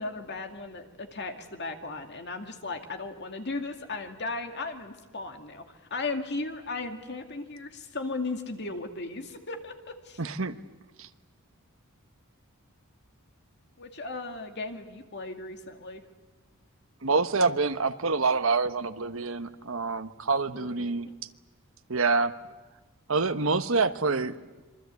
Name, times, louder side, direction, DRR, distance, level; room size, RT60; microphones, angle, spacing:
voice 1, 0.0-10.2 13.8-16.0 20.5-21.0, left 3 dB, 50° left, 6 dB, 2.3 m, -36 dB
voice 2, 10.2-10.5 11.0-11.1 17.0-21.1 21.9-22.3 23.1-24.3, right 4 dB, 60° right, 11 dB, 1.1 m, -26 dB
26.5 x 24.0 x 8.3 m, 1.2 s
head